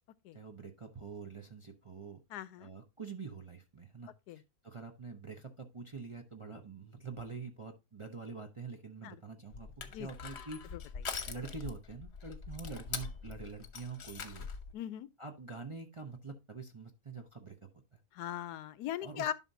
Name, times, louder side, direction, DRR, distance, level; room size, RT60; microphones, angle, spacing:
voice 1, 0.3-2.2 2.6-4.1 4.6-10.9 11.3-14.5 15.2-18.0 19.0-19.3, right 4 dB, 30° right, 0.6 m, -46 dB
voice 2, 2.3-2.7 4.3-4.4 9.0-9.2 9.9-10.1 10.7-10.8 14.7-15.1 18.1-19.3, left 10 dB, 85° left, 1.2 m, -39 dB
Crushing, 9.5-14.7, left 5 dB, 50° left, 1.1 m, -43 dB
11.0 x 5.7 x 2.7 m
omnidirectional pair, 1.7 m